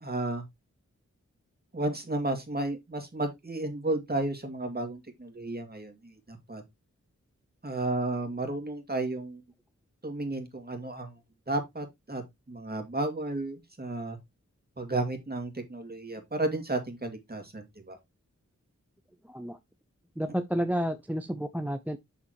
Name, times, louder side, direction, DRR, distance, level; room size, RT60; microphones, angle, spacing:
voice 1, 0.0-0.4 1.7-6.6 7.6-9.4 10.0-11.1 11.5-12.2 12.5-14.2 14.8-18.0, right 2 dB, 30° right, 2.3 m, -33 dB
voice 2, 20.2-22.0, equal, 5° right, 0.5 m, -30 dB
7.0 x 6.8 x 3.0 m
wide cardioid pair, 65°, 30 cm